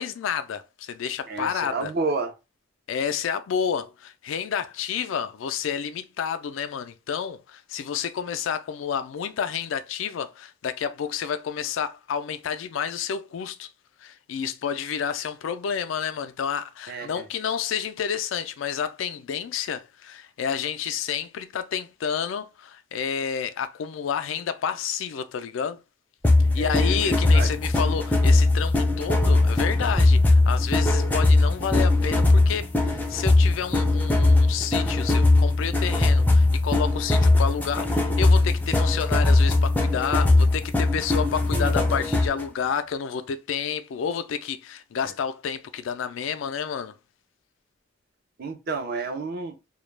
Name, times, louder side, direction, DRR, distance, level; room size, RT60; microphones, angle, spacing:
voice 1, 0.0-1.9 2.9-13.7 14.0-25.8 26.5-47.0, left 7 dB, 85° left, 0.3 m, -30 dB
voice 2, 1.3-2.3 16.9-17.2 26.6-27.5 41.5-42.1 45.0-45.1 48.4-49.6, right 3 dB, 55° right, 0.5 m, -31 dB
sound 1, 26.2-42.4, left 2 dB, 10° left, 0.4 m, -20 dB
2.3 x 2.0 x 3.1 m
head